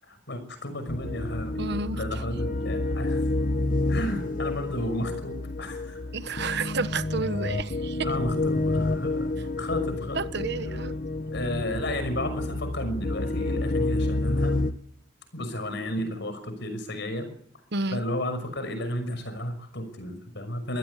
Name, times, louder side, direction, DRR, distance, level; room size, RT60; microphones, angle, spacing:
voice 1, 0.0-1.6 1.9-3.3 3.9-6.0 6.4-6.6 8.0-9.3 9.6-10.2 11.3-14.6 15.3-17.3 17.9-20.8, left 1 dB, 60° left, 6.0 m, -33 dB
sound 1, 0.9-14.7, left 2 dB, 45° left, 1.1 m, -29 dB
voice 2, 1.6-2.0 6.1-8.1 10.1-10.9 17.7-18.0, right 3 dB, 60° right, 1.2 m, -30 dB
23.5 x 17.5 x 8.3 m
head